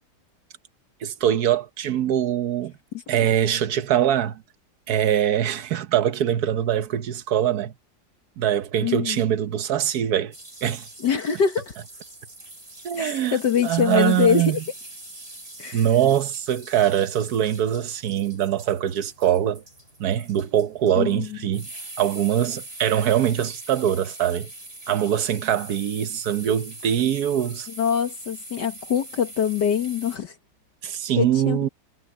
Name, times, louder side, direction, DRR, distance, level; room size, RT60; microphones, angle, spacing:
voice 1, 1.0-2.7 3.1-4.4 4.9-7.7 8.4-10.3 10.6-10.9 12.8-13.4 13.6-14.6 15.7-19.6 20.0-21.7 22.0-24.5 24.9-27.7 30.8-31.7, right 10 dB, 60° right, 1.3 m, -23 dB
voice 2, 8.8-9.2 11.0-11.7 13.0-14.6 15.6-15.8 21.0-21.4 27.8-30.3 30.8-31.7, left 7 dB, 65° left, 2.0 m, -24 dB
sound 1, 10.3-30.2, right 2 dB, 30° right, 5.5 m, -42 dB
omnidirectional pair, 2.0 m